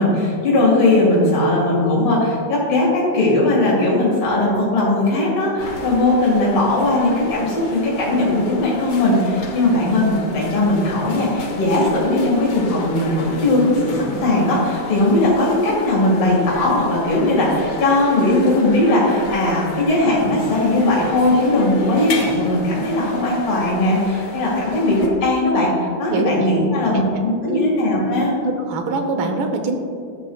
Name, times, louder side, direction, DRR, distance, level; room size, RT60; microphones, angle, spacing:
voice 1, 0.0-28.3, left 2 dB, 85° left, -5 dB, 2.9 m, -18 dB
sound 1, 5.6-25.1, left 2 dB, 55° left, 1.5 m, -33 dB
voice 2, 28.4-29.8, right 3 dB, 70° right, 5 dB, 1.6 m, -23 dB
12.5 x 8.4 x 2.3 m, 2.4 s
omnidirectional pair, 2.4 m